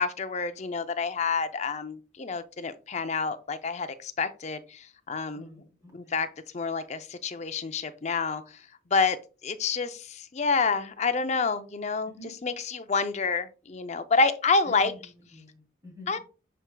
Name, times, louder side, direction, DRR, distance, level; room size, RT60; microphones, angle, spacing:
voice 1, 0.0-5.5 5.9-6.3 6.5-8.4 8.9-9.2 9.4-12.1 12.4-14.9 16.1-16.2, left 4 dB, 35° left, 0.5 m, -28 dB
voice 2, 5.3-6.2 12.0-12.3 14.7-16.2, left 1 dB, 15° right, 2.9 m, -49 dB
10.5 x 4.5 x 2.3 m
head